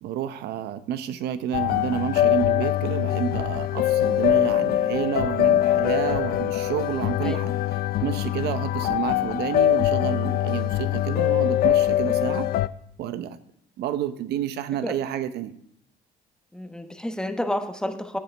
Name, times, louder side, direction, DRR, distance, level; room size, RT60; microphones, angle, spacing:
voice 1, 0.0-7.5 8.0-12.5 13.0-13.4 13.8-15.5, right 10 dB, 75° right, 12 dB, 0.8 m, -29 dB
sound 1, 1.5-12.7, left 13 dB, 60° left, 0.4 m, -23 dB
voice 2, 16.5-18.2, left 1 dB, 5° left, 7 dB, 1.0 m, -30 dB
15.5 x 8.3 x 3.4 m, 0.71 s
cardioid pair, 110°, 17 cm